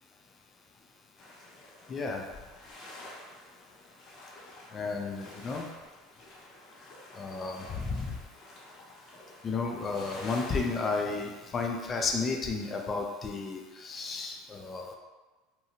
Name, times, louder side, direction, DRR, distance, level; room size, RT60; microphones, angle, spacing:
sound 1, 1.2-11.4, left 1 dB, 45° left, 0.8 m, -49 dB
voice 1, 1.9-2.3 4.7-5.7 7.2-8.2 9.4-14.9, left 4 dB, 30° left, 2 dB, 0.4 m, -33 dB
2.8 x 2.2 x 2.8 m, 1.3 s
supercardioid pair, 95°, 0 cm